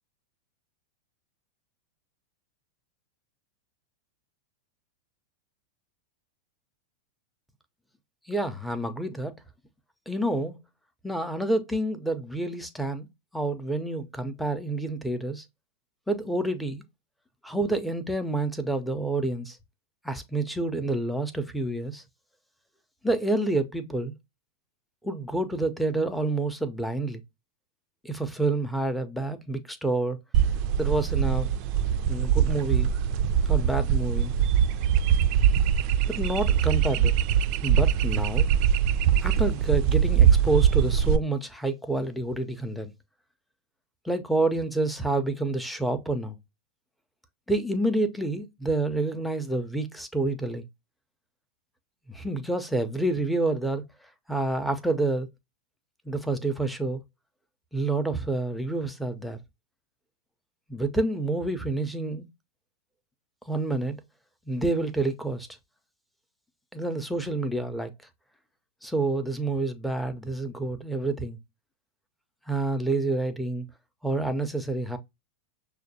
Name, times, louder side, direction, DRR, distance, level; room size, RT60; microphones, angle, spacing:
voice 1, 8.3-9.3 10.1-10.6 11.0-13.1 13.3-15.4 16.1-16.8 17.4-19.6 20.0-22.0 23.0-24.1 25.0-27.2 28.0-30.2 30.8-31.5 32.1-32.9 33.4-34.3 36.1-37.1 37.6-38.5 39.2-42.9 44.0-46.4 47.5-50.7 52.1-53.8 54.3-55.3 56.0-57.0 57.7-59.4 60.7-62.3 63.5-64.0 64.5-65.5 66.7-67.9 68.8-71.4 72.5-73.7 74.0-75.0, right 2 dB, ahead, 0.6 m, -28 dB
sound 1, 30.3-41.2, right 8 dB, 40° right, 0.3 m, -22 dB
6.4 x 2.2 x 2.8 m
figure-of-eight pair, 90°, 0 cm